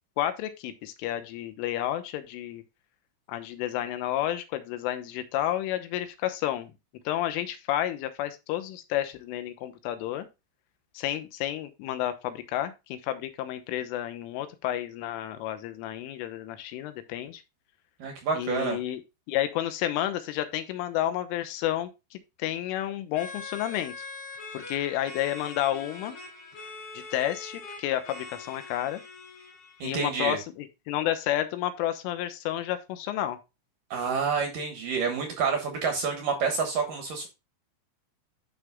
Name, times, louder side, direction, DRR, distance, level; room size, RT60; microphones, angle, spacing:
voice 1, 0.2-2.6 3.3-6.7 7.1-10.3 11.0-17.4 18.3-19.0 19.3-24.1 24.5-26.2 27.0-29.0 29.8-33.4, left 12 dB, 85° left, 10 dB, 3.5 m, -31 dB
voice 2, 18.0-18.8 29.8-30.4 33.9-37.3, right 5 dB, 65° right, 4 dB, 2.2 m, -28 dB
sound 1, 23.1-30.0, left 3 dB, 40° left, 3.8 m, -43 dB
11.5 x 6.0 x 2.3 m, 0.25 s
omnidirectional pair, 5.7 m